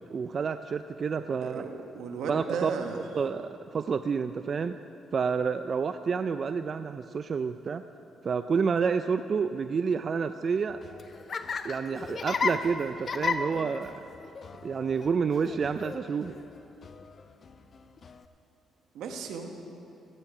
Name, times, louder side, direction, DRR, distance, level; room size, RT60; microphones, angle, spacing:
voice 1, 0.1-1.6 2.3-2.7 3.1-4.8 5.1-7.8 8.2-10.8 11.6-14.0 14.6-16.4, right 5 dB, 45° right, 10 dB, 0.3 m, -29 dB
voice 2, 1.4-3.0 18.9-19.5, right 5 dB, 80° right, 4 dB, 1.2 m, -35 dB
Laughter, 10.7-18.3, left 5 dB, 45° left, 0.6 m, -35 dB
17.5 x 8.9 x 4.9 m, 2.8 s
cardioid pair, 90°, 0 cm